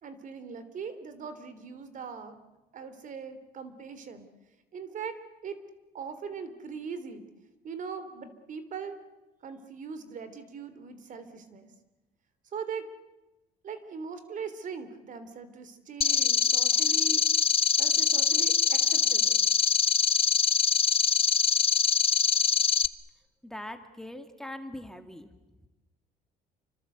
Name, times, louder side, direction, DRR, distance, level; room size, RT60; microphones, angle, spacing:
voice 1, 0.0-2.4 2.7-4.3 4.7-5.2 5.4-5.6 5.9-7.2 7.6-9.0 9.4-11.7 12.5-12.9 13.6-17.2 17.8-19.4, right 6 dB, 50° right, 11 dB, 3.4 m, -40 dB
sound 1, 16.0-22.9, left 7 dB, 35° left, 0.9 m, -24 dB
voice 2, 23.4-25.3, left 1 dB, 5° left, 6 dB, 2.2 m, -41 dB
29.0 x 24.5 x 8.1 m, 1.1 s
cardioid pair, 110°, 17 cm